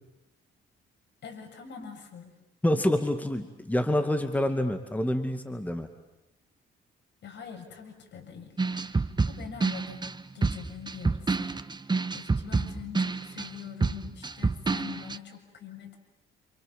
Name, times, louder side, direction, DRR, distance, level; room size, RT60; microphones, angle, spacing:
voice 1, 1.2-2.3 7.2-10.0 10.3-11.6 11.8-16.0, left 7 dB, 60° left, 3 dB, 7.4 m, -44 dB
voice 2, 2.6-5.9, left 1 dB, 10° left, 7 dB, 2.3 m, -27 dB
sound 1, 8.6-15.2, right 4 dB, 20° right, 1.4 m, -28 dB
29.0 x 28.0 x 7.4 m, 0.94 s
cardioid pair, 90°, 20 cm